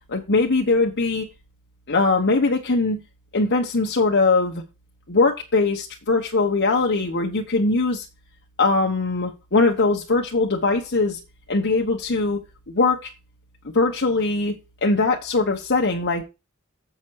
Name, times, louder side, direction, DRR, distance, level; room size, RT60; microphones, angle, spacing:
voice 1, 0.1-1.3 1.9-3.0 3.3-4.6 5.1-8.0 8.6-11.2 11.5-12.4 12.7-13.1 13.7-14.6 14.8-16.2, left 3 dB, 50° left, 0 dB, 1.2 m, -21 dB
7.4 x 6.2 x 4.7 m, 0.26 s
head